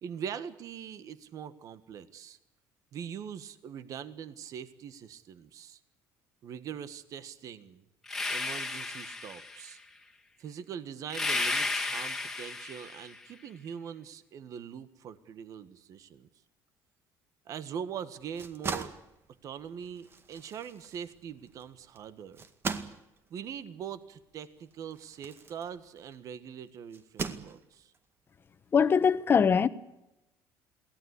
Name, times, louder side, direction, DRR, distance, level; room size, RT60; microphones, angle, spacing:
voice 1, 0.0-2.4 2.9-5.8 6.4-7.8 8.3-9.8 10.4-16.3 17.4-18.9 19.4-22.4 23.3-27.9, right 8 dB, 55° right, 1.5 m, -42 dB
sound 1, 8.1-9.7 11.1-13.2, left 3 dB, 5° left, 2.2 m, -33 dB
sound 2, 18.2-26.3 26.9-28.0, right 5 dB, 35° right, 2.0 m, -40 dB
voice 2, 28.7-29.7, left 6 dB, 30° left, 1.2 m, -22 dB
22.5 x 17.5 x 8.4 m
cardioid pair, 120°, 7 cm